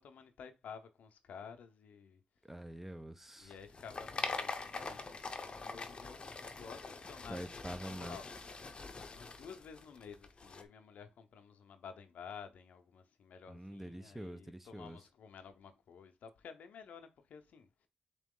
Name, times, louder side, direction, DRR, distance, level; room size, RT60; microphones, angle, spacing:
voice 1, 0.0-2.2 3.4-6.2 6.6-7.7 8.0-8.2 9.1-17.9, left 6 dB, 75° left, 0.6 m, -52 dB
voice 2, 2.4-3.5 7.3-8.2 13.5-15.0, right 1 dB, 10° right, 0.5 m, -46 dB
sound 1, 3.5-10.6, left 4 dB, 40° left, 0.7 m, -44 dB
3.8 x 3.0 x 3.7 m
cardioid pair, 60°, 3 cm